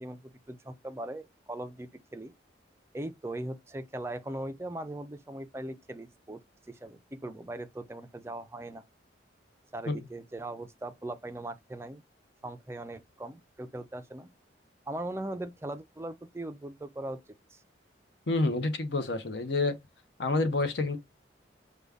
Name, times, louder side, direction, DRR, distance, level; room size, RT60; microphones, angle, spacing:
voice 1, 0.0-2.3 2.9-6.4 6.7-8.8 9.7-12.0 12.4-14.3 14.9-17.2 17.5-17.6, right 1 dB, 15° right, 0.4 m, -39 dB
voice 2, 18.3-19.7 20.2-21.0, left 2 dB, 65° left, 0.7 m, -28 dB
5.1 x 2.2 x 3.4 m
head